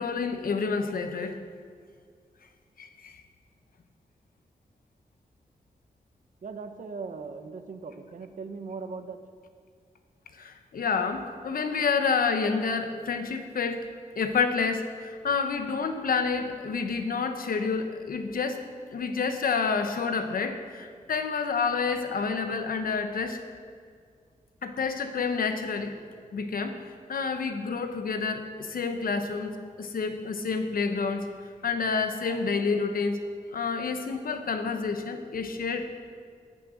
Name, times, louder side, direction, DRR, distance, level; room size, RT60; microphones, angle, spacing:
voice 1, 0.0-1.4 2.8-3.2 10.4-13.9 14.2-18.6 18.9-23.4 24.6-25.9 26.3-26.8 27.1-31.3 31.6-33.2 33.5-35.9, left 5 dB, 80° left, 7 dB, 1.0 m, -29 dB
voice 2, 6.4-9.2, right 4 dB, 60° right, 8 dB, 0.9 m, -39 dB
15.0 x 6.7 x 6.3 m, 2.1 s
wide cardioid pair, 135°, 15 cm